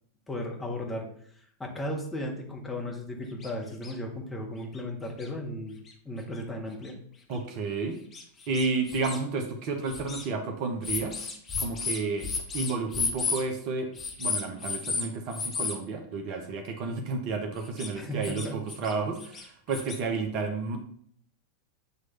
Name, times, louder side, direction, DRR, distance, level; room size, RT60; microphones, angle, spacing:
voice 1, 0.3-1.1 1.4-5.8 6.0-7.0 17.9-18.6, left 1 dB, 10° left, 0 dB, 1.5 m, -35 dB
sound 1, 3.4-3.5 3.8-3.9 4.7-4.8 5.2-5.3 5.9-6.0 6.8-6.9 7.3-7.4 8.1-9.2 9.9-10.3 10.8-13.4 14.0-15.0 15.3-15.7 17.6-17.9 18.2-18.9 19.2-19.9, left 5 dB, 25° left, 1.3 m, -32 dB
voice 2, 7.3-8.0 8.5-11.2 11.6-13.9 14.2-20.8, right 4 dB, 45° right, 4 dB, 1.0 m, -31 dB
8.1 x 3.2 x 5.7 m, 0.62 s
figure-of-eight pair, 90°, 0 cm